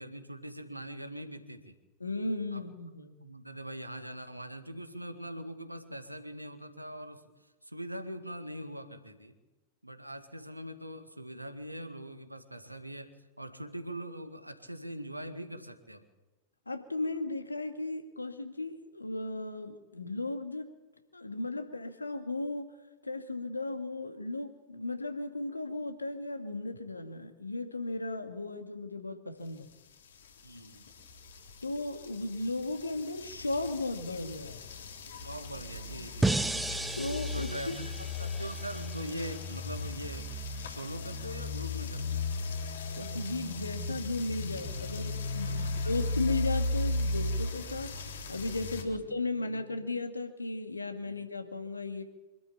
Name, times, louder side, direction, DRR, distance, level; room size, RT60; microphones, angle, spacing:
voice 1, 0.0-1.8 2.5-2.6 3.2-7.2 7.6-9.4 9.8-13.1 13.4-16.0 30.4-30.8 35.2-36.7 37.3-40.3 40.6-42.3 45.5-45.9 48.8-49.0 49.3-49.7 51.0-51.1, equal, 85° right, 8 dB, 2.0 m, -42 dB
voice 2, 2.0-3.1 16.7-20.7 21.1-22.7 23.0-29.7 31.6-34.6 37.0-37.5 43.0-52.0, left 2 dB, 80° left, 6 dB, 2.2 m, -36 dB
sound 1, 30.3-48.8, left 2 dB, 65° left, 3.7 m, -36 dB
sound 2, 36.2-39.3, right 2 dB, 5° right, 0.8 m, -33 dB
25.5 x 13.0 x 8.7 m, 1.1 s
figure-of-eight pair, 90°, 0 cm